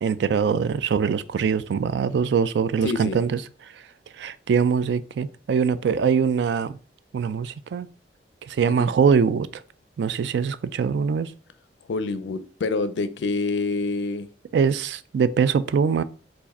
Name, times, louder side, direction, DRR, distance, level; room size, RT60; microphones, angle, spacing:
voice 1, 0.0-3.4 4.2-6.8 7.1-7.9 8.5-9.5 10.0-11.3 14.5-16.0, right 6 dB, 65° right, 0.3 m, -22 dB
voice 2, 2.8-3.2 8.7-8.9 11.9-14.3, left 3 dB, 80° left, 0.4 m, -27 dB
4.7 x 2.5 x 4.1 m
head